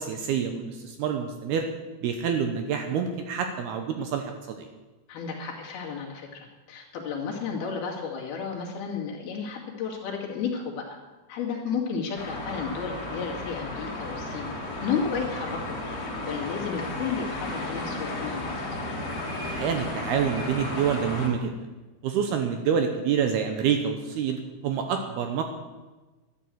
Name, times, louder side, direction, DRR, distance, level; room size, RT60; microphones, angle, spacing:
voice 1, 0.0-1.7 2.0-4.7 19.5-21.7 22.0-25.4, right 7 dB, 75° right, 6 dB, 2.6 m, -27 dB
voice 2, 5.1-10.9 11.3-14.5 14.8-15.6 16.2-18.6, left 6 dB, 60° left, -2 dB, 4.0 m, -32 dB
sound 1, 12.2-21.3, left 2 dB, 40° left, 4.0 m, -34 dB
12.0 x 11.5 x 7.8 m, 1.2 s
omnidirectional pair, 5.3 m